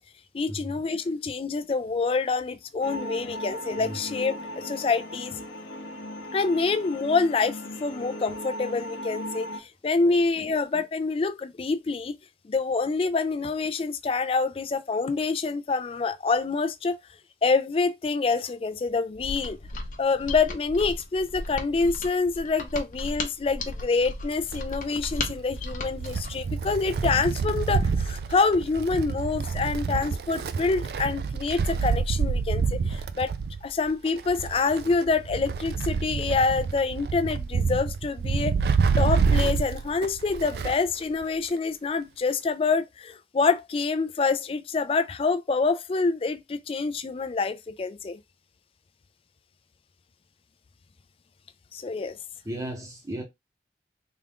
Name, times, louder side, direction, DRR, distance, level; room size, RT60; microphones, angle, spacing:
voice 1, 0.3-5.3 6.3-12.2 12.4-17.0 17.4-19.6 20.0-33.3 33.6-38.5 39.0-48.2 51.7-52.2, left 4 dB, 30° left, 0.3 m, -26 dB
sound 1, 2.8-9.6, equal, 85° left, 0.8 m, -37 dB
voice 2, 10.0-10.5 52.4-53.2, right 1 dB, 20° right, 0.7 m, -37 dB
Mechanisms, 19.2-26.4, left 2 dB, 45° left, 0.7 m, -35 dB
Wind, 24.3-40.9 41.2-41.3 42.3-42.4, right 5 dB, 60° right, 0.3 m, -28 dB
3.5 x 2.4 x 3.5 m
head